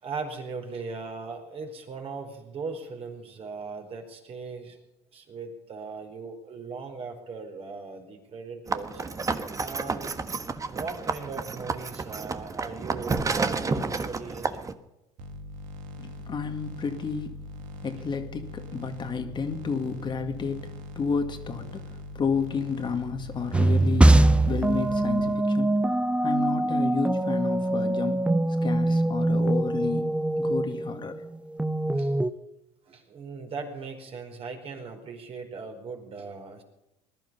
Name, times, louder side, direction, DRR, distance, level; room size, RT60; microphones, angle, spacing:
voice 1, 0.0-4.8 5.1-9.0 9.6-10.2 10.7-14.7 31.9-32.1 32.9-36.6, right 4 dB, 45° right, 4.5 m, -39 dB
sound 1, 8.7-14.7, right 4 dB, 25° right, 1.3 m, -30 dB
sound 2, 15.2-25.3, left 1 dB, 70° right, 2.4 m, -41 dB
voice 2, 16.0-17.4 17.8-28.3 28.6-31.2, left 5 dB, 35° left, 2.1 m, -31 dB
sound 3, 23.5-32.3, right 1 dB, 10° right, 0.8 m, -23 dB
20.5 x 11.5 x 5.5 m
supercardioid pair, 85°, 14 cm